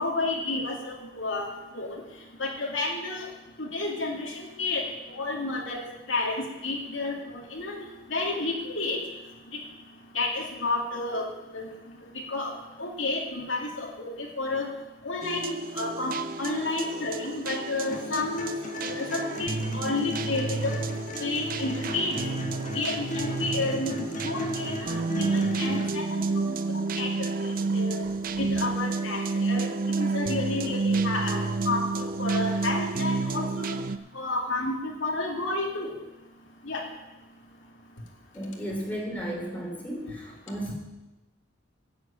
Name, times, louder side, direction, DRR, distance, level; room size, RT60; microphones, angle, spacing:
voice 1, 0.0-1.5 1.7-2.0 2.4-3.3 3.6-4.8 5.2-5.8 6.1-7.8 8.1-9.0 10.1-11.3 11.5-11.7 12.3-12.5 12.8-14.1 14.4-14.7 15.0-18.5 18.8-19.1 19.4-20.7 21.2-22.2 22.7-24.9 25.2-27.3 27.7-28.0 28.4-29.7 30.0-31.9 32.2-33.8 34.1-35.9 36.7-36.8, left 2 dB, 85° left, -1 dB, 2.4 m, -30 dB
sound 1, 15.2-34.0, right 3 dB, 45° right, 0.5 m, -30 dB
sound 2, 17.9-25.9, left 1 dB, 40° left, 1.4 m, -36 dB
voice 2, 38.3-40.7, equal, 10° left, -2 dB, 2.9 m, -34 dB
9.3 x 8.0 x 8.5 m, 1.0 s
head